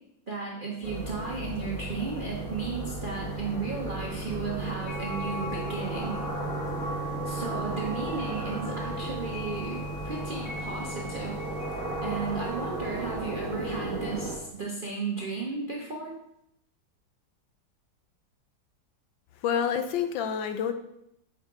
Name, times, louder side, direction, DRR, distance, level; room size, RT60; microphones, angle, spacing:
voice 1, 0.3-6.2 7.2-11.4 12.0-16.1, right 4 dB, 50° right, -3 dB, 0.6 m, -34 dB
sound 1, 0.8-14.4, right 2 dB, 15° left, 0.8 m, -35 dB
sound 2, 4.9-14.1, equal, 40° left, 1.3 m, -41 dB
voice 2, 19.4-20.7, left 8 dB, 85° left, 8 dB, 1.3 m, -28 dB
7.2 x 4.7 x 3.7 m, 0.79 s
omnidirectional pair, 2.0 m